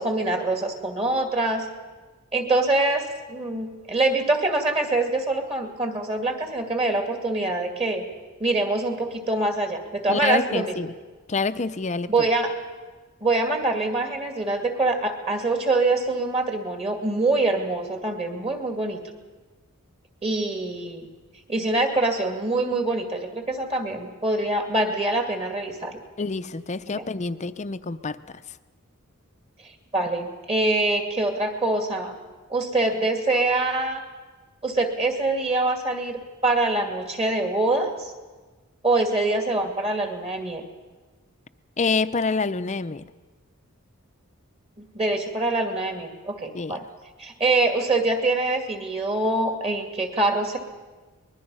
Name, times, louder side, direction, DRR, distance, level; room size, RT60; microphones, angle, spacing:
voice 1, 0.0-1.7 2.3-8.1 8.4-10.8 12.1-12.5 13.2-19.0 20.2-21.1 21.5-26.0 26.9-27.0 29.6-32.2 32.5-34.0 34.6-38.1 38.8-40.6 44.8-46.8 47.2-50.6, right 2 dB, 30° right, 5 dB, 2.4 m, -24 dB
voice 2, 10.1-10.9 11.3-12.3 26.2-28.6 41.8-43.1 46.5-46.8, left 4 dB, 30° left, 12 dB, 0.6 m, -27 dB
24.5 x 21.0 x 5.6 m, 1.3 s
head